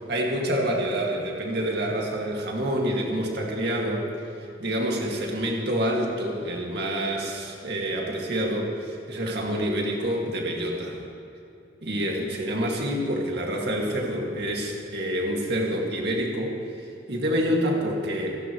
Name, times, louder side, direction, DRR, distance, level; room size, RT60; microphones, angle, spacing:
voice 1, 0.1-4.1 4.6-11.0 11.8-16.6 17.1-18.4, equal, 55° right, -1 dB, 2.2 m, -27 dB
28.0 x 11.5 x 3.1 m, 2.7 s
head